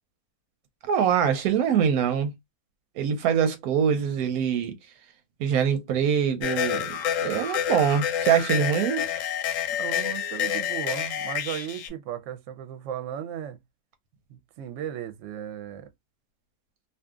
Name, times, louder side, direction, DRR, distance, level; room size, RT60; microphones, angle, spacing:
voice 1, 0.8-2.3 3.0-4.7 5.4-9.1, right 8 dB, 90° right, 1.1 m, -24 dB
sound 1, 6.4-11.9, left 9 dB, 70° left, 0.9 m, -29 dB
voice 2, 9.7-13.6 14.3-15.9, right 9 dB, 65° right, 0.9 m, -36 dB
2.7 x 2.4 x 2.3 m
omnidirectional pair, 1.5 m